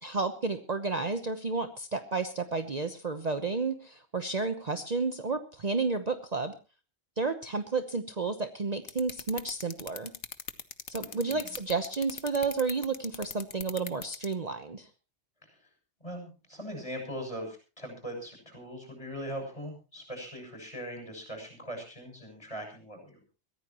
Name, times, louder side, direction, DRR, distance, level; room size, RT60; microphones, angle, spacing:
voice 1, 0.0-6.5 7.2-10.1 10.9-14.9, right 4 dB, 40° right, 8 dB, 1.0 m, -31 dB
sound 1, 8.9-14.3, left 7 dB, 85° left, 1.4 m, -38 dB
voice 2, 11.0-11.5 16.0-23.2, equal, 30° left, 3 dB, 7.2 m, -41 dB
22.5 x 15.5 x 3.0 m, 0.33 s
omnidirectional pair, 1.1 m